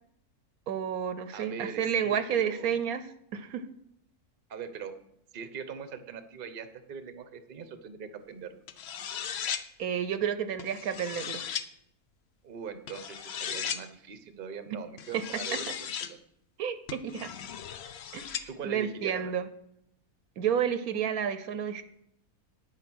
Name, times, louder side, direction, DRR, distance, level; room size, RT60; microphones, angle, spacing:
voice 1, 0.7-3.1 3.3-3.6 9.8-11.4 14.7-14.8 15.1-15.2 15.5-15.7 16.6-17.3 18.1-19.5 20.4-21.8, right 8 dB, 70° right, 12 dB, 1.1 m, -31 dB
voice 2, 1.3-2.9 4.5-5.0 5.3-8.6 12.4-16.2 18.5-19.3, right 6 dB, 40° right, 10 dB, 0.9 m, -42 dB
sound 1, 8.7-9.6 10.6-11.7 12.9-13.8 15.0-16.1 16.9-18.5, left 8 dB, 60° left, 0.7 m, -36 dB
9.5 x 8.9 x 6.2 m, 0.76 s
omnidirectional pair, 1.6 m